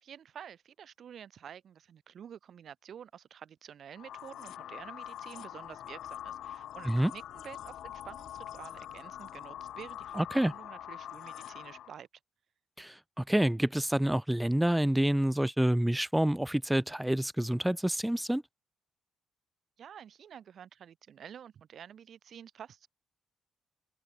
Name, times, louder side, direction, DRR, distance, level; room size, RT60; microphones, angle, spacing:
voice 1, 0.0-12.1 19.8-22.9, right 8 dB, 60° right, 1.5 m, -49 dB
sound 1, 3.9-12.0, left 11 dB, 75° left, 0.4 m, -44 dB
voice 2, 10.2-10.5 12.8-18.4, right 1 dB, 5° right, 0.6 m, -28 dB
open air
cardioid pair, 90°, 0 cm